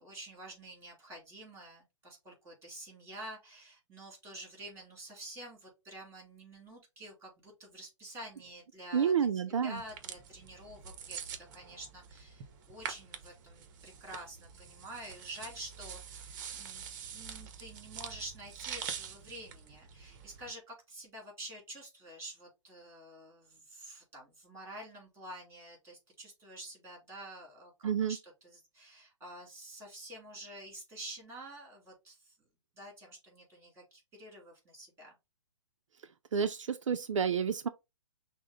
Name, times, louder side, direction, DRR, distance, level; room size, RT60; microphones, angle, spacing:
voice 1, 0.0-9.1 9.6-11.2 11.5-16.9 17.1-28.2 28.4-32.4 32.7-35.1, right 1 dB, 15° right, 2.7 m, -48 dB
voice 2, 8.9-9.8 27.8-28.2 36.3-37.7, right 7 dB, 70° right, 0.5 m, -29 dB
sound 1, 9.8-20.5, right 7 dB, 40° right, 0.8 m, -45 dB
6.0 x 2.1 x 3.8 m
hypercardioid pair, 125°, 16 cm